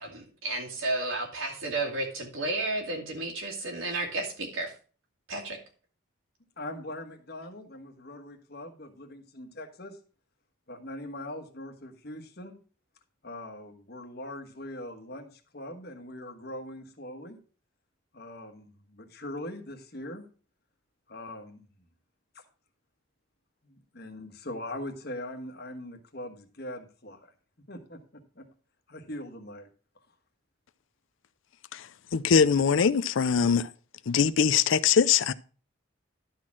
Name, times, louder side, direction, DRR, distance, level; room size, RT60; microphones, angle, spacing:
voice 1, 0.0-4.7 5.3-5.6, right 2 dB, 80° right, 2.5 m, -32 dB
voice 2, 6.6-10.0 10.7-12.6 13.2-17.4 18.1-20.2 21.1-21.7 22.3-22.4 23.6-27.3 27.7-28.5 28.9-29.7, left 1 dB, 50° left, 1.4 m, -41 dB
voice 3, 32.1-33.7 34.1-35.3, left 6 dB, 70° left, 0.4 m, -22 dB
12.0 x 4.3 x 5.9 m
head